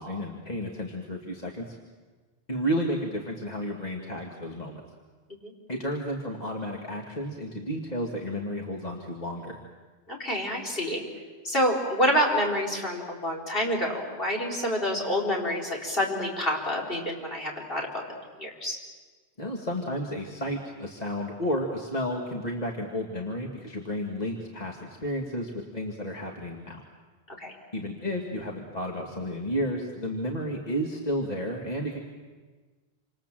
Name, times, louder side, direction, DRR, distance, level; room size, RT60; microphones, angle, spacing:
voice 1, 0.0-1.8 2.5-4.8 5.7-9.6 19.4-26.8 27.7-32.0, equal, 40° left, 0 dB, 2.2 m, -32 dB
voice 2, 10.1-11.0 11.4-18.0 18.4-18.8 27.4-27.5, equal, 55° left, -1 dB, 4.7 m, -27 dB
28.0 x 26.5 x 7.6 m, 1.4 s
omnidirectional pair, 1.1 m